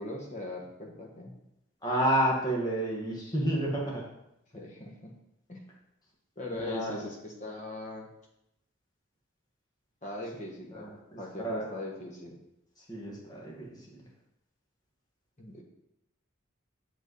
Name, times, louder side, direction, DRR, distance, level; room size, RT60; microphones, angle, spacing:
voice 1, 0.0-1.4 4.5-5.1 5.5-5.6 6.4-8.1 10.0-10.9 11.2-12.4 15.4-15.6, left 1 dB, 35° left, 0 dB, 1.2 m, -40 dB
voice 2, 1.8-4.0 6.6-7.1 10.7-11.7 12.8-14.1, right 1 dB, 20° left, -4 dB, 1.5 m, -31 dB
6.3 x 5.3 x 4.1 m, 0.84 s
head